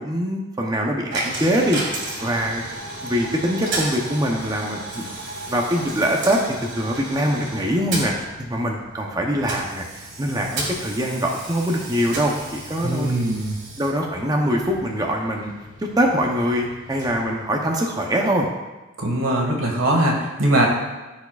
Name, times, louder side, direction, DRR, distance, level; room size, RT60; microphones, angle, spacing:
voice 1, 0.0-1.8 2.2-2.6 3.0-5.0 5.5-8.1 8.4-13.1 13.8-15.5 15.8-18.5, equal, 20° right, 1 dB, 0.6 m, -23 dB
Coin (dropping), 1.1-18.0, right 2 dB, 60° right, 1.8 m, -34 dB
voice 2, 12.8-13.6 19.0-20.7, right 1 dB, 90° right, 0 dB, 1.6 m, -21 dB
14.0 x 4.7 x 2.4 m, 1.2 s
head